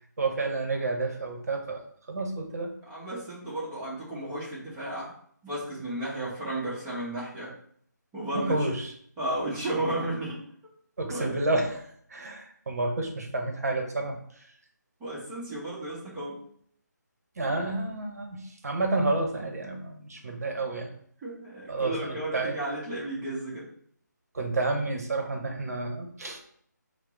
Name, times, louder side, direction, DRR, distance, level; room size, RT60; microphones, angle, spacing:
voice 1, 0.2-1.8 2.1-2.7 8.3-8.9 11.0-11.8 12.1-14.2 17.4-20.9 21.7-22.6 24.3-26.4, right 2 dB, 55° right, 3 dB, 0.8 m, -30 dB
voice 2, 2.9-5.2 5.4-7.5 8.1-8.7 9.2-10.4 11.1-11.3 15.0-16.4 20.2-20.3 21.2-23.7, right 1 dB, 10° right, -7 dB, 0.7 m, -33 dB
4.4 x 2.0 x 3.6 m, 0.62 s
figure-of-eight pair, 155°, 10 cm